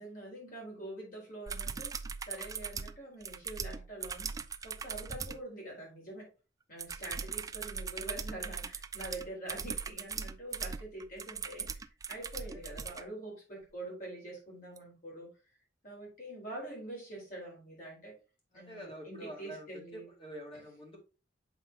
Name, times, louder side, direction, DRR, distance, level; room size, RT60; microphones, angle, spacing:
voice 1, 0.0-2.0 2.3-4.3 4.6-6.3 6.7-11.8 12.1-15.3 15.8-18.2 18.5-20.1, right 1 dB, 50° left, -2 dB, 4.0 m, -45 dB
sound 1, 1.5-5.4 6.8-13.0 14.8-14.9, right 6 dB, 20° right, 0.3 m, -40 dB
voice 2, 12.5-13.0 18.5-21.0, equal, 30° left, 0 dB, 2.0 m, -47 dB
7.0 x 5.5 x 2.8 m, 0.32 s
head